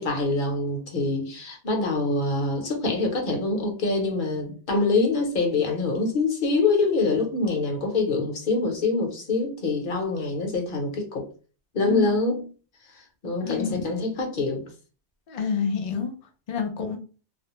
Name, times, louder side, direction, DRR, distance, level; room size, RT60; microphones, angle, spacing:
voice 1, 0.0-11.3 11.7-12.5 13.2-14.6, left 3 dB, 50° left, 0.8 m, -25 dB
voice 2, 13.4-13.8 15.3-16.1 16.5-17.0, left 5 dB, 70° left, 0.4 m, -27 dB
2.4 x 2.0 x 2.9 m
omnidirectional pair, 1.2 m